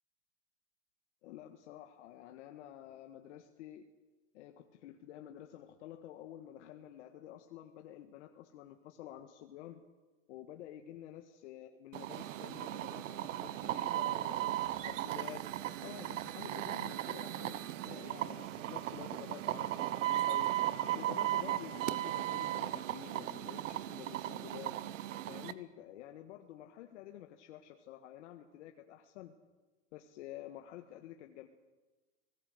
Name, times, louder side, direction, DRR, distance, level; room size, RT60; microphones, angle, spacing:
voice 1, 1.2-3.9 4.3-9.8 10.3-15.4 15.8-20.5 20.9-24.7 25.3-29.3 29.9-31.5, left 12 dB, 65° left, 5 dB, 1.7 m, -50 dB
sound 1, 11.9-25.5, right 14 dB, 80° right, 1.3 m, -36 dB
25.5 x 19.0 x 8.0 m, 1.2 s
supercardioid pair, 155°, 38 cm